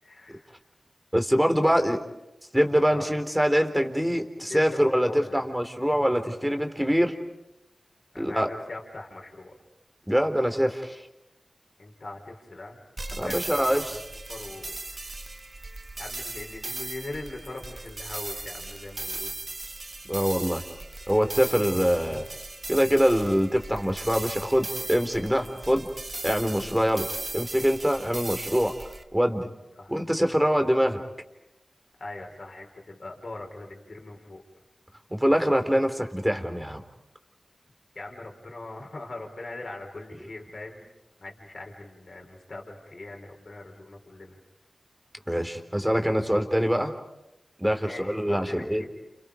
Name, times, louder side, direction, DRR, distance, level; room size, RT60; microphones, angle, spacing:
voice 1, 0.0-0.6 2.9-3.1 4.5-5.4 8.1-9.6 11.8-14.0 14.3-15.2 16.0-19.4 29.8-29.9 32.0-34.4 37.9-40.9 41.2-44.4 47.8-48.9, left 2 dB, 65° left, 1 dB, 4.8 m, -41 dB
voice 2, 1.1-2.0 2.5-7.1 8.2-8.5 10.1-11.0 13.2-13.8 20.1-20.6 21.1-22.3 22.7-25.9 26.2-27.1 27.3-28.7 29.1-29.5 29.9-31.0 35.1-36.8 45.3-46.9 47.6-48.8, equal, 5° right, 6 dB, 3.6 m, -24 dB
sound 1, 13.0-29.0, right 2 dB, 50° right, 1.3 m, -38 dB
30.0 x 29.5 x 5.2 m, 0.92 s
cardioid pair, 45°, 0 cm